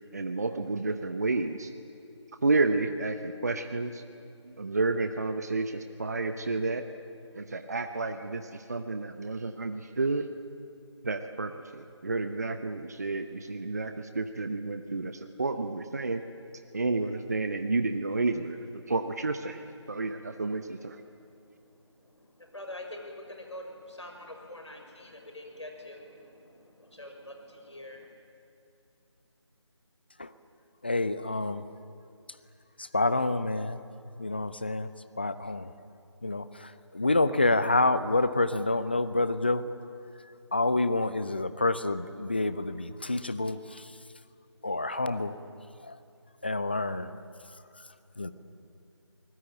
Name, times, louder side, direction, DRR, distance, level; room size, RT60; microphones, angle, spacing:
voice 1, 0.1-1.7 2.4-4.0 4.4-6.8 7.3-10.3 11.0-16.2 16.7-21.0, right 3 dB, 35° right, 8 dB, 0.9 m, -30 dB
voice 2, 21.1-28.1, left 1 dB, 75° left, 3 dB, 6.1 m, -46 dB
voice 3, 30.8-31.7 32.8-33.8 34.2-34.9 35.2-35.7 36.2-39.7 40.5-43.9 44.6-45.4 45.8-46.0 46.4-47.1 48.2-48.3, left 2 dB, 20° left, 14 dB, 0.6 m, -28 dB
26.5 x 20.0 x 9.0 m, 2.7 s
figure-of-eight pair, 165°, 15 cm